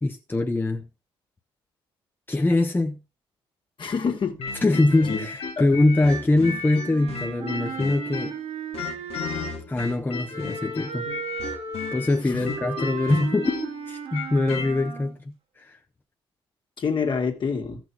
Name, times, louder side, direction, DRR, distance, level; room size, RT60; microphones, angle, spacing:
voice 1, 0.0-0.9 2.3-3.0 4.6-8.3 9.7-11.1 11.9-15.8, left 2 dB, 20° left, 1.1 m, -23 dB
voice 2, 3.8-4.4 5.1-5.3 5.6-5.7 12.3-12.5 16.8-17.8, left 5 dB, 50° left, 2.2 m, -27 dB
sound 1, 4.4-8.4 8.7-14.7, left 5 dB, 70° left, 1.8 m, -34 dB
Wind instrument woodwind instrument, 6.8-9.7 10.3-15.1, right 5 dB, 70° right, 2.3 m, -36 dB
14.0 x 6.3 x 4.6 m
supercardioid pair, 60°, 11 cm